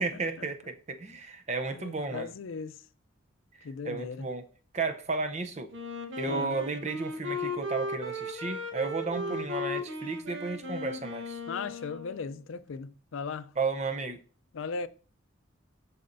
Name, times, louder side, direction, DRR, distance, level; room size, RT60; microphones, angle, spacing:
voice 1, 0.0-2.4 3.8-4.4 4.7-5.7 6.2-11.4 13.6-14.2, right 4 dB, 35° right, 0.7 m, -33 dB
voice 2, 1.7-2.7 3.6-4.3 6.3-6.5 9.2-9.5 11.5-13.5 14.5-14.9, left 4 dB, 85° left, 0.5 m, -37 dB
Wind instrument woodwind instrument, 5.7-12.4, left 2 dB, 70° right, 1.1 m, -36 dB
12.0 x 4.2 x 2.6 m
head